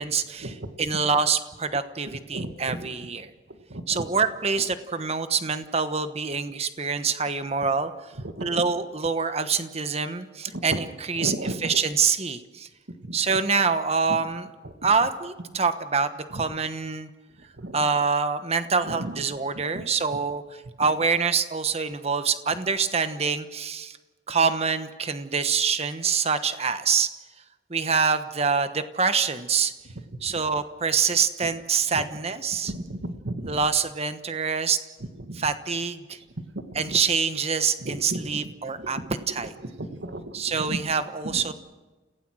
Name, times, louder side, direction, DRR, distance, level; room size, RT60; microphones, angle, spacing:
voice 1, 0.0-3.3 3.9-8.1 8.4-12.7 13.1-14.5 14.8-17.1 17.7-24.0 24.3-27.1 27.7-29.7 30.2-32.7 33.5-34.8 35.3-36.2 36.7-39.0 39.3-39.5 40.3-41.5, right 5 dB, 35° right, 10 dB, 1.2 m, -25 dB
voice 2, 2.3-2.9 3.7-4.0 8.4-8.6 11.2-11.6 13.1-13.2 17.6-17.8 19.0-19.1 32.7-33.6 35.3-35.4 36.7-36.8 37.8-38.3 38.8-38.9 39.8-40.3 40.7-40.8 41.2-41.4, right 1 dB, 85° right, 7 dB, 1.6 m, -33 dB
29.0 x 16.5 x 6.3 m, 1.2 s
head